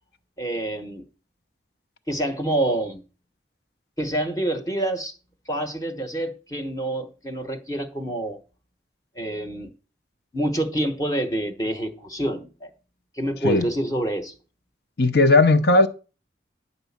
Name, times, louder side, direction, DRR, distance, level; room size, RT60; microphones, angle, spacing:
voice 1, 0.4-1.1 2.1-3.0 4.0-5.1 5.5-8.4 9.2-9.7 10.3-12.7 13.2-14.3, right 1 dB, 20° left, 0.9 m, -27 dB
voice 2, 15.0-15.9, left 2 dB, 60° left, 0.8 m, -16 dB
10.5 x 4.1 x 7.2 m
head